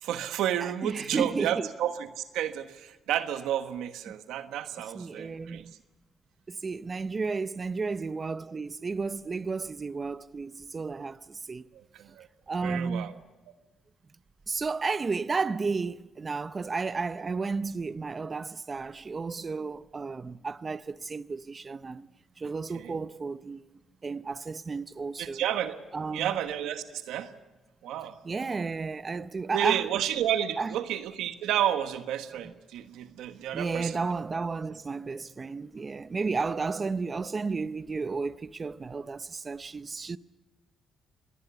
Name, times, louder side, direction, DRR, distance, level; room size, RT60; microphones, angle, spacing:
voice 1, 0.0-5.6 11.7-12.3 12.6-13.1 22.7-23.0 25.2-25.8 26.1-27.3 27.8-28.2 29.5-34.0, right 11 dB, 85° right, 1.2 m, -31 dB
voice 2, 0.6-1.7 4.9-5.7 6.5-11.7 12.5-13.1 14.5-22.1 22.4-23.6 24.0-25.4 25.9-26.3 28.2-29.8 30.6-30.7 33.5-40.2, right 4 dB, 30° right, 0.6 m, -33 dB
25.5 x 19.5 x 7.0 m
cardioid pair, 90°, 0 cm